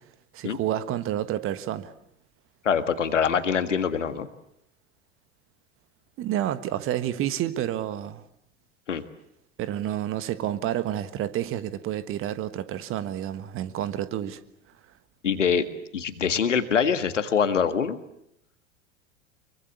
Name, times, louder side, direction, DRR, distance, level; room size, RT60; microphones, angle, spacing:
voice 1, 0.3-1.9 6.2-8.2 9.6-14.4, right 12 dB, 35° right, 14 dB, 1.5 m, -29 dB
voice 2, 2.6-4.3 8.9-9.0 15.2-15.7 15.9-18.0, left 7 dB, 75° left, 11 dB, 1.9 m, -24 dB
24.5 x 23.5 x 8.3 m, 0.76 s
figure-of-eight pair, 80°, 37 cm